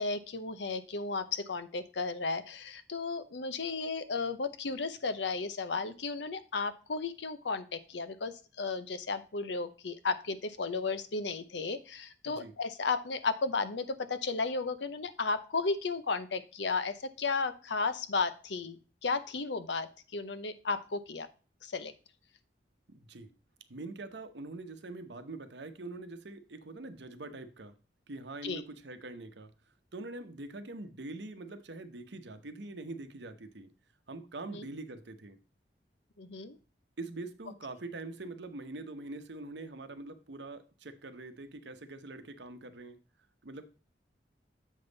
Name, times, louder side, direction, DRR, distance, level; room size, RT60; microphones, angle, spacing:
voice 1, 0.0-18.8 19.0-21.3 21.6-21.9 28.4-28.6 34.5-34.7 36.2-36.6, left 4 dB, 75° left, 0.8 m, -34 dB
voice 2, 12.2-12.5 22.9-23.3 23.7-27.7 28.1-29.5 29.9-33.7 34.1-35.4 37.0-43.0 43.4-43.7, right 2 dB, 75° right, 0.9 m, -44 dB
7.3 x 5.3 x 3.9 m
head